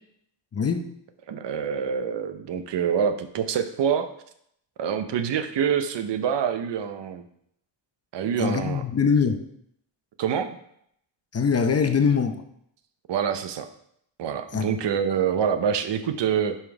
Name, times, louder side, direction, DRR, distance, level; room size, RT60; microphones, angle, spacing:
voice 1, 0.5-0.9 8.4-9.5 11.3-12.4 14.5-14.8, left 6 dB, 35° left, 7 dB, 0.7 m, -23 dB
voice 2, 1.3-4.1 4.8-7.2 8.1-8.8 10.2-10.6 13.1-13.7 14.2-16.6, right 7 dB, 70° right, 9 dB, 0.8 m, -26 dB
5.6 x 5.2 x 4.7 m, 0.71 s
wide cardioid pair, 110°, 44 cm